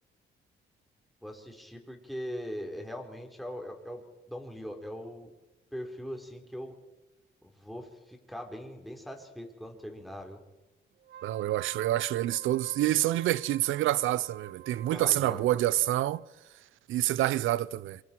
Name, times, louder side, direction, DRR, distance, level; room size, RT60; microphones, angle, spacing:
voice 1, 1.2-4.0 4.3-5.3 5.7-6.7 7.6-10.4 14.9-15.5, equal, ahead, 4.4 m, -41 dB
Wind instrument woodwind instrument, 11.0-16.3, right 10 dB, 65° right, 1.5 m, -48 dB
voice 2, 11.2-16.2 16.9-18.0, right 14 dB, 80° right, 0.7 m, -27 dB
27.0 x 24.0 x 4.7 m
cardioid pair, 90°, 20 cm